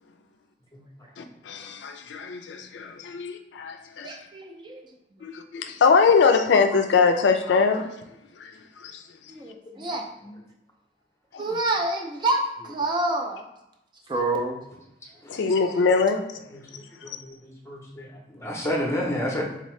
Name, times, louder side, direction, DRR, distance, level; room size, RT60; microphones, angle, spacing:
voice 1, 1.2-4.1 5.2-7.9 8.4-8.5 8.8-9.0 11.3-11.5 15.3-16.3 17.1-17.2, left 5 dB, 80° left, 6 dB, 0.4 m, -22 dB
voice 2, 4.0-4.8 9.3-10.1 11.4-13.4 14.1-14.6, right 2 dB, 25° right, 1 dB, 0.4 m, -27 dB
voice 3, 17.0-19.4, left 1 dB, 15° left, -1 dB, 0.6 m, -30 dB
3.7 x 2.7 x 3.1 m, 0.88 s
head